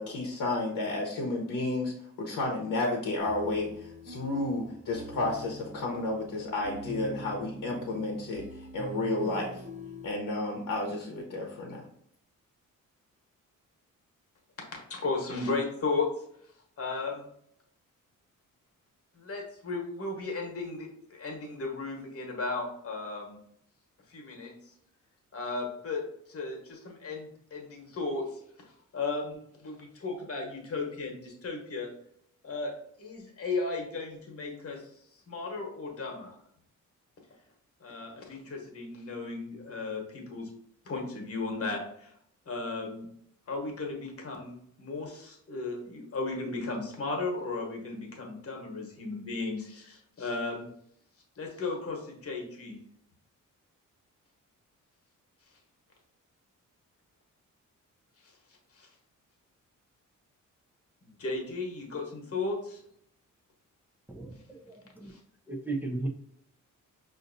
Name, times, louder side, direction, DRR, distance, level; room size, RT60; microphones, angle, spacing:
voice 1, 0.0-8.5 8.7-9.5 10.0-11.8, left 2 dB, 70° left, -1 dB, 0.9 m, -31 dB
sound 1, 3.2-10.1, left 1 dB, 25° right, 0.9 m, -44 dB
voice 2, 14.6-16.1 16.8-17.3 19.2-23.4 24.1-24.7 25.3-28.4 28.9-31.9 32.4-34.9 35.3-36.3 37.8-40.5 40.8-42.1 42.5-43.1 43.5-50.7 51.4-52.8 58.7-58.9 61.0-62.8 65.0-65.2, left 3 dB, 45° left, 1 dB, 1.2 m, -35 dB
voice 3, 64.1-65.1 65.5-66.1, right 2 dB, 5° right, 1 dB, 0.5 m, -36 dB
5.6 x 2.6 x 2.6 m, 0.70 s
cardioid pair, 120°, 32 cm